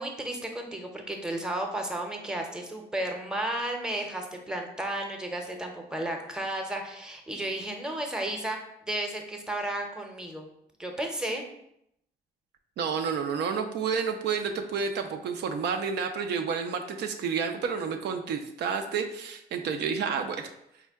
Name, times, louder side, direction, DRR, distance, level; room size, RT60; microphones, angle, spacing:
voice 1, 0.0-8.6 8.8-10.5 10.8-11.4, right 1 dB, 5° right, 2 dB, 0.7 m, -33 dB
voice 2, 12.8-20.5, right 6 dB, 80° right, 5 dB, 0.4 m, -30 dB
4.5 x 2.1 x 3.5 m, 0.78 s
cardioid pair, 75°, 17 cm